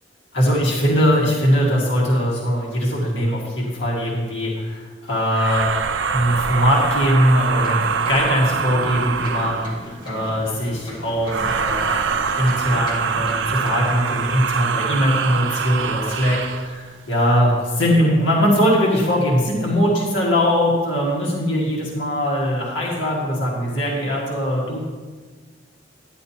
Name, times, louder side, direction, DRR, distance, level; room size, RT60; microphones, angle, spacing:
voice 1, 0.3-5.7 6.1-9.8 10.0-12.1 12.3-24.8, equal, 75° left, -4 dB, 1.9 m, -20 dB
sound 1, 5.3-9.9 11.2-16.7, right 6 dB, 80° right, 0.5 m, -24 dB
sound 2, 7.6-13.9 14.2-14.3, equal, 25° left, 2.0 m, -37 dB
10.5 x 10.0 x 2.9 m, 1.4 s
head